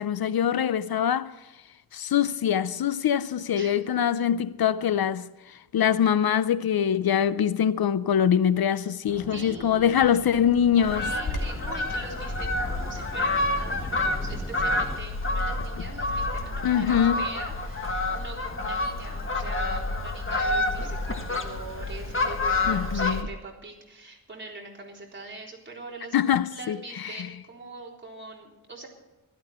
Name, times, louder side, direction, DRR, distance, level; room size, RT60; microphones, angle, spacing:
voice 1, 0.0-1.3 1.9-11.0 16.6-17.2 22.7-23.2 26.1-27.3, left 9 dB, 75° left, 0.6 m, -24 dB
voice 2, 3.5-3.9 9.3-10.4 10.8-26.2 26.5-28.9, right 3 dB, 30° right, 3.9 m, -43 dB
sound 1, 9.1-15.0, right 1 dB, 5° right, 0.7 m, -43 dB
Fowl, 10.8-23.2, left 2 dB, 35° left, 1.6 m, -28 dB
Bird vocalization bird call bird song, 11.2-16.8, left 2 dB, 55° left, 2.7 m, -40 dB
16.0 x 12.5 x 4.4 m
wide cardioid pair, 120°, 37 cm